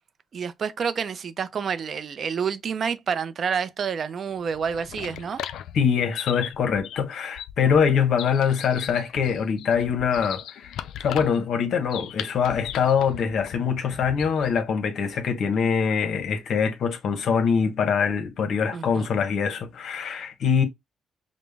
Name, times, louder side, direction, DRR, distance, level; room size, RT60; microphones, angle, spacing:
voice 1, 0.3-5.4 18.7-19.1, right 6 dB, 55° right, 0.5 m, -28 dB
sound 1, 4.4-14.6, left 10 dB, 80° left, 0.3 m, -38 dB
voice 2, 5.7-20.6, left 6 dB, 65° left, 0.9 m, -24 dB
5.1 x 2.1 x 3.4 m
cardioid pair, 90°, 0 cm